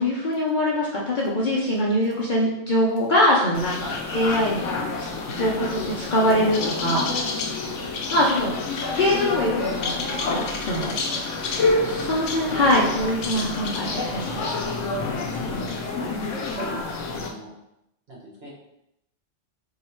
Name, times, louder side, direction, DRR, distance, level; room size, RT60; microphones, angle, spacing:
voice 1, 0.0-4.7 5.0-7.3 8.1-8.5 8.9-11.0 11.8-14.7, left 1 dB, 50° left, -4 dB, 0.7 m, -23 dB
sound 1, 3.5-17.3, left 3 dB, 75° left, 1.0 m, -28 dB
voice 2, 11.6-12.1 15.3-17.5 18.1-18.5, right 1 dB, 55° right, -4 dB, 1.3 m, -39 dB
3.1 x 2.8 x 4.3 m, 0.83 s
omnidirectional pair, 1.3 m